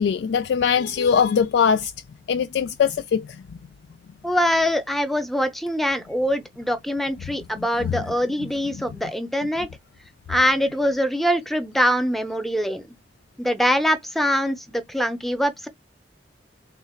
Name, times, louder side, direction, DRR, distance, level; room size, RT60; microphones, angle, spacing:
voice 1, 0.0-1.9 2.3-3.4 7.6-8.0, left 7 dB, 75° left, 0.3 m, -21 dB
voice 2, 4.2-9.7 10.3-12.9 13.4-15.7, equal, ahead, 0.6 m, -23 dB
3.7 x 2.4 x 4.2 m
head